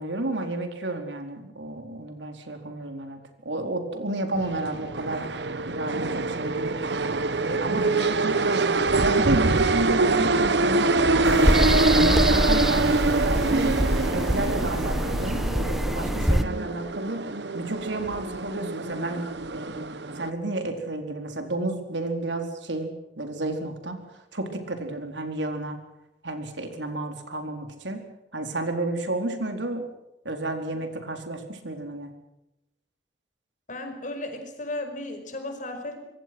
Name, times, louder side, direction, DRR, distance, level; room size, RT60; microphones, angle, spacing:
voice 1, 0.0-5.3 5.6-6.8 7.4-10.9 11.2-17.2 17.5-19.8 20.2-24.0 24.3-25.8 26.2-28.0 28.3-29.8 30.2-32.1, right 2 dB, 85° right, 5 dB, 4.2 m, -31 dB
sound 1, 4.4-20.3, right 3 dB, 70° right, 1.1 m, -25 dB
sound 2, 11.2-16.4, equal, ahead, 1.0 m, -24 dB
voice 2, 33.7-36.0, left 2 dB, 45° left, 6 dB, 5.3 m, -35 dB
26.0 x 22.0 x 6.2 m, 0.92 s
head